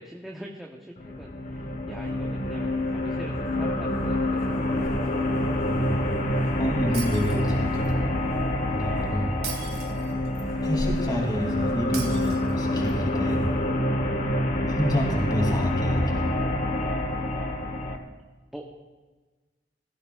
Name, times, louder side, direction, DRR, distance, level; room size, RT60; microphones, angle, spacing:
voice 1, 0.0-4.5 18.5-18.8, equal, ahead, -2 dB, 1.0 m, -42 dB
sound 1, 1.0-18.0, left 1 dB, 50° left, 1.2 m, -27 dB
sound 2, 2.1-2.2 4.0-4.1 4.4-7.9 8.2-8.5 8.9-9.1 9.6-13.5, equal, 30° right, 4.0 m, -42 dB
voice 2, 6.6-8.1 8.7-9.4 10.6-13.5 14.7-16.3, equal, 25° left, -1 dB, 3.0 m, -28 dB
Shatter, 6.9-7.9 9.4-10.5 11.9-12.9, right 7 dB, 70° right, 2.7 m, -39 dB
18.0 x 14.5 x 2.4 m, 1.3 s
head